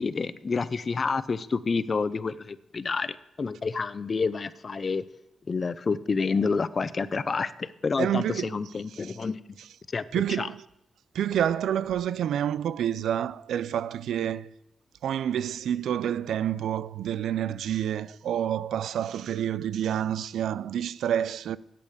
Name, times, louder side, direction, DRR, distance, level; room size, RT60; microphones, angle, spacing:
voice 1, 0.0-5.0 5.5-9.4 9.9-10.0 10.4-10.5, left 4 dB, 35° left, 0.5 m, -28 dB
voice 2, 8.0-8.6 8.9-9.2 9.6-9.7 10.1-10.7 11.1-14.5 15.0-21.6, right 10 dB, 85° right, 0.4 m, -28 dB
8.6 x 8.6 x 7.9 m
cardioid pair, 120°, 0 cm